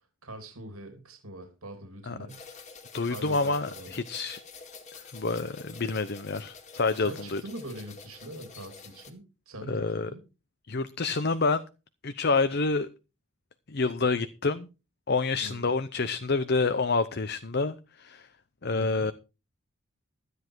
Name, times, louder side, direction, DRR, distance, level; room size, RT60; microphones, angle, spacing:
voice 1, 0.2-2.4 3.1-4.0 7.0-10.2 15.4-15.7 18.7-19.1, right 1 dB, 80° right, 2.9 m, -43 dB
sound 1, 2.3-9.1, left 5 dB, 30° left, 2.1 m, -48 dB
voice 2, 2.9-4.4 5.1-7.4 9.7-10.1 10.7-11.6 12.0-12.9 13.7-14.7 15.1-18.3 18.6-19.1, left 3 dB, 50° left, 0.7 m, -28 dB
13.0 x 9.8 x 4.7 m
head